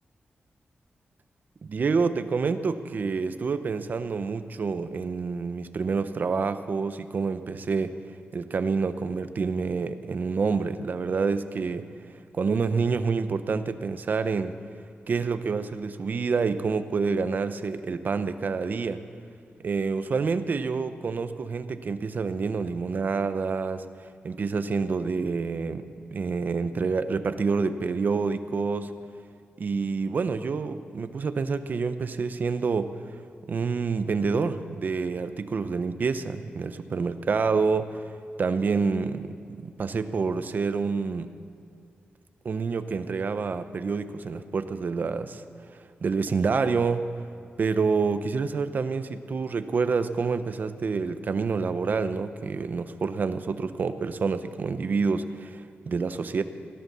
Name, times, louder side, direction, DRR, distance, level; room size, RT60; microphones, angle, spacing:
voice 1, 1.6-7.9 8.3-11.9 12.3-14.5 15.1-19.0 19.6-23.8 24.2-25.8 26.1-28.9 29.6-32.9 33.5-38.0 38.4-41.3 42.4-45.4 46.0-47.1 47.6-56.4, right 4 dB, 50° right, 10 dB, 0.7 m, -27 dB
17.0 x 11.0 x 6.8 m, 2.3 s
wide cardioid pair, 145°, 4 cm